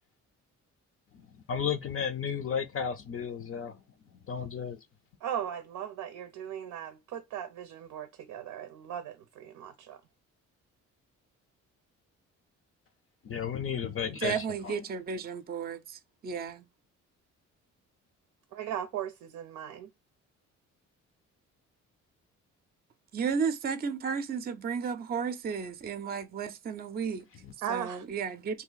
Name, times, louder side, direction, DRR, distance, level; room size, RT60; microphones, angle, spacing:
voice 1, 1.5-3.8 4.3-4.8 13.2-14.7 27.4-27.5, left 7 dB, 45° left, 0.5 m, -33 dB
voice 2, 5.2-10.0 18.5-19.9 27.6-28.0, right 9 dB, 85° right, 0.5 m, -38 dB
voice 3, 14.2-16.6 23.1-27.2 27.7-28.6, right 6 dB, 30° right, 0.5 m, -33 dB
2.7 x 2.4 x 3.8 m
cardioid pair, 90°, 30 cm